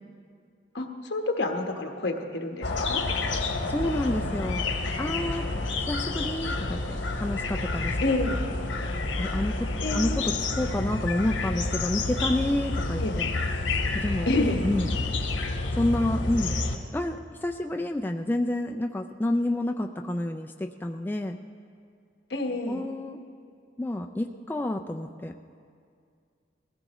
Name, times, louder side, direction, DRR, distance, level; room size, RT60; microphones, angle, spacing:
voice 1, 0.7-3.0 8.0-8.4 9.8-10.2 13.0-13.1 14.3-14.6 22.3-22.8, left 2 dB, 65° left, 3 dB, 1.2 m, -28 dB
sound 1, 2.6-16.8, left 2 dB, 85° left, 1.1 m, -29 dB
voice 2, 3.7-4.6 5.0-8.0 9.2-13.3 14.0-14.3 14.6-15.1 15.7-16.6 16.9-21.4 22.7-23.2 23.8-25.3, left 1 dB, 10° left, 3 dB, 0.3 m, -29 dB
20.5 x 15.5 x 3.1 m, 2.3 s
head